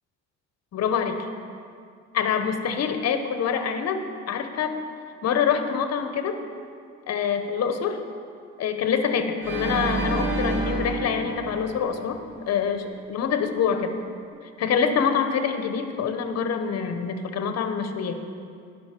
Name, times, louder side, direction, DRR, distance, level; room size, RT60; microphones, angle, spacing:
voice 1, 0.7-1.3 2.1-4.8 5.2-6.4 7.1-8.0 8.6-12.2 12.5-13.9 14.4-18.2, left 7 dB, 55° left, 8 dB, 0.8 m, -25 dB
Organ, 9.4-12.5, right 2 dB, 80° right, 2.0 m, -29 dB
11.0 x 5.5 x 4.3 m, 2.3 s
cardioid pair, 90°, 30 cm